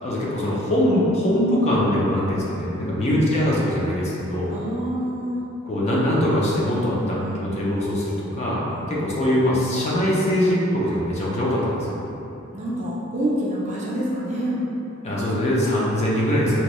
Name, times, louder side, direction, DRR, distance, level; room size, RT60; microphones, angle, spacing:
voice 1, 0.0-4.5 5.6-12.0 15.0-16.6, equal, 30° left, -6 dB, 0.5 m, -22 dB
voice 2, 2.7-3.2 4.5-5.4 6.9-7.4 8.7-8.9 12.5-14.6, right 1 dB, 35° right, -5 dB, 0.5 m, -28 dB
2.9 x 2.6 x 3.0 m, 3.0 s
head